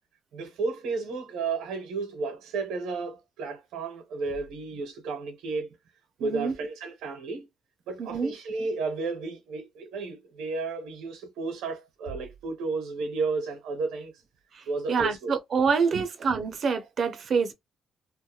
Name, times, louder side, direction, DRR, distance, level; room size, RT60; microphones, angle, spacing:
voice 1, 0.3-5.7 6.2-7.5 7.9-14.1 14.7-15.3 15.9-16.0, right 4 dB, 90° right, 0.7 m, -32 dB
voice 2, 6.2-6.5 8.0-8.3 14.5-17.5, right 5 dB, 55° right, 0.6 m, -26 dB
2.3 x 2.1 x 2.8 m
cardioid pair, 90°, 0 cm